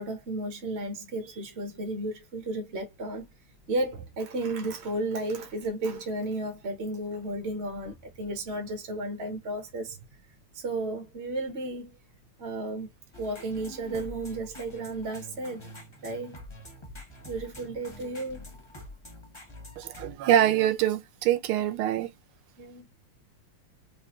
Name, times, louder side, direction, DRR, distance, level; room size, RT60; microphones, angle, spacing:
voice 1, 0.0-3.3 3.7-10.0 10.5-12.0 12.4-12.9 13.2-15.7 16.0-16.4 17.2-18.4 22.6-22.8, right 2 dB, 40° right, 1.0 m, -33 dB
sound 1, 13.1-20.1, left 1 dB, 20° left, 0.7 m, -46 dB
voice 2, 19.8-22.1, right 11 dB, 85° right, 1.5 m, -24 dB
5.1 x 2.3 x 2.9 m
omnidirectional pair, 2.3 m